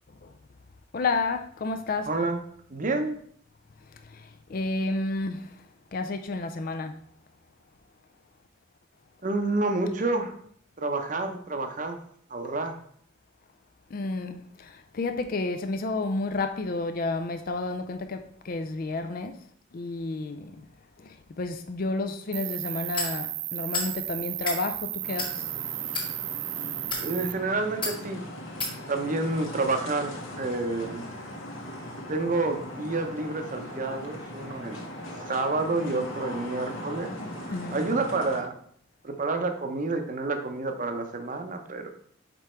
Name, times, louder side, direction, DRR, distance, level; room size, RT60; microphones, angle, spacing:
voice 1, 0.9-2.1 4.1-4.2 4.5-5.5 5.9-6.9 13.9-19.3 19.7-20.5 21.0-25.4 37.5-37.8, left 3 dB, 45° left, 0.4 m, -31 dB
voice 2, 2.1-2.4 2.7-3.1 9.2-10.3 10.8-12.0 12.3-12.8 27.0-28.2 28.9-31.1 32.1-34.9 35.3-37.1 37.4-38.5 39.0-41.9, right 3 dB, 40° right, 0.7 m, -29 dB
Cricket, 22.3-27.3, right 17 dB, 85° right, 0.3 m, -34 dB
sound 1, 22.9-23.1 23.7-23.9 24.3-24.6 25.1-25.3 25.9-26.1 26.8-27.1 27.8-28.0 28.6-28.7, left 2 dB, 25° left, 1.5 m, -30 dB
sound 2, 25.0-38.4, left 1 dB, 70° left, 1.4 m, -39 dB
5.2 x 4.7 x 4.3 m
head